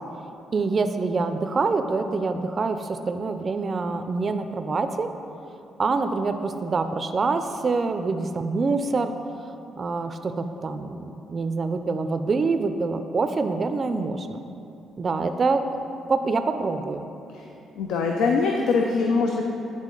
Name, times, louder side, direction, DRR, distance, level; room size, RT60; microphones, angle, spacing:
voice 1, 0.5-5.1 5.8-9.1 9.8-14.4 15.0-15.7 16.1-17.1, right 4 dB, 40° right, 8 dB, 0.3 m, -25 dB
voice 2, 17.8-19.4, left 4 dB, 90° left, 1 dB, 0.4 m, -23 dB
9.0 x 3.6 x 3.8 m, 2.8 s
cardioid pair, 90°, 0 cm